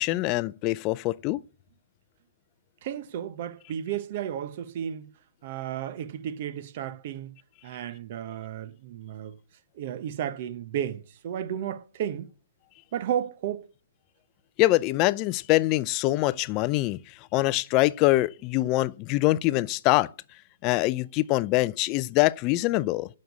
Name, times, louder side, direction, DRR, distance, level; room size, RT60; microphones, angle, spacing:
voice 1, 0.0-1.4 14.6-17.0 17.3-20.1 20.6-23.1, left 18 dB, 30° left, 0.4 m, -24 dB
voice 2, 2.8-5.1 5.4-7.3 7.6-9.4 9.8-12.3 12.9-13.7, right 10 dB, 45° right, 1.0 m, -33 dB
9.2 x 6.4 x 8.1 m
hypercardioid pair, 145°, 0 cm